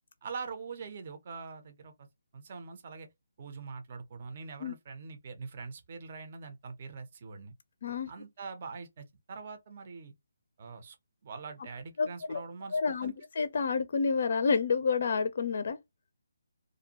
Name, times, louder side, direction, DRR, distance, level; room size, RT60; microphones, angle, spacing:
voice 1, 0.2-2.1 2.3-3.1 3.4-7.5 8.1-10.1 10.6-11.0 11.2-13.1, right 4 dB, 40° right, 0.6 m, -43 dB
voice 2, 12.0-12.4 12.7-15.8, left 5 dB, 50° left, 0.4 m, -29 dB
2.5 x 2.2 x 2.7 m
hypercardioid pair, 160°, 0 cm